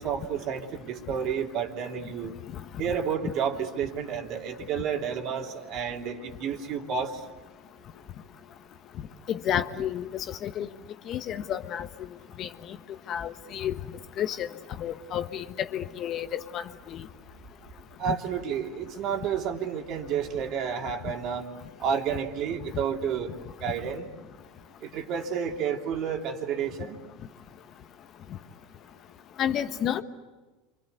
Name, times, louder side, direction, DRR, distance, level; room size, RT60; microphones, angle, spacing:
voice 1, 0.0-2.3 2.8-7.2 18.0-21.5 21.8-23.3 23.6-24.1 24.8-27.0, right 7 dB, 55° right, 3 dB, 3.1 m, -30 dB
voice 2, 9.3-10.7 11.1-11.9 12.4-12.5 13.1-13.7 14.2-14.5 14.8-16.6 16.9-17.1 29.4-30.0, left 10 dB, 45° left, 10 dB, 1.3 m, -30 dB
28.0 x 25.5 x 8.3 m, 1.2 s
hypercardioid pair, 100°, 0 cm